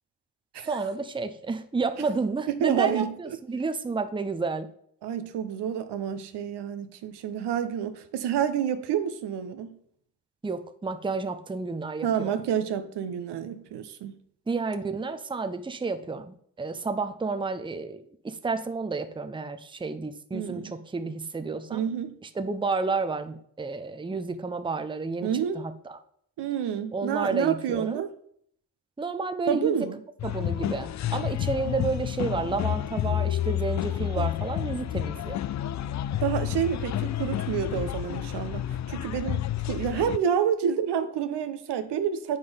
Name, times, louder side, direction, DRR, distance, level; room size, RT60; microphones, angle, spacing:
voice 1, 0.6-4.7 10.4-12.4 14.5-21.8 22.4-26.0 26.9-28.0 29.0-29.8 30.2-35.4, right 4 dB, 10° right, 0.7 m, -31 dB
voice 2, 2.5-3.4 5.0-9.8 12.0-14.2 20.3-20.8 21.7-22.1 25.2-25.6 26.4-28.1 29.5-30.0 34.0-34.3 36.2-42.4, right 8 dB, 70° right, 0.9 m, -29 dB
sound 1, 30.2-40.2, left 12 dB, 40° left, 0.4 m, -30 dB
7.8 x 5.7 x 3.4 m
hypercardioid pair, 45°, 43 cm